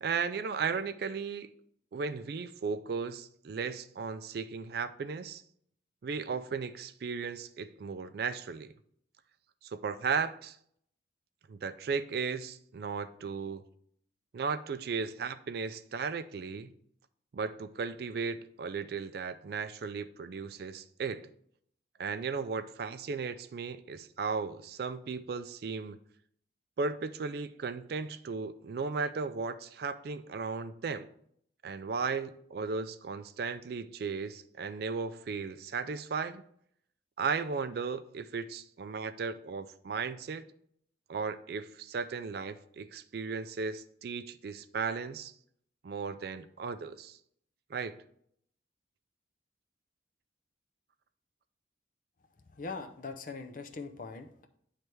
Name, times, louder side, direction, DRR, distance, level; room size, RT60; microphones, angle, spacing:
voice 1, 0.0-1.5 1.9-5.4 6.0-8.7 9.6-10.6 11.5-13.6 14.3-16.7 17.3-21.3 22.0-26.0 26.8-31.1 31.6-36.4 37.2-40.5 41.1-45.3 45.8-47.2 47.7-48.0, right 5 dB, 55° right, 0.3 m, -36 dB
voice 2, 52.6-54.5, left 4 dB, 45° left, 0.6 m, -41 dB
9.3 x 3.3 x 4.5 m
head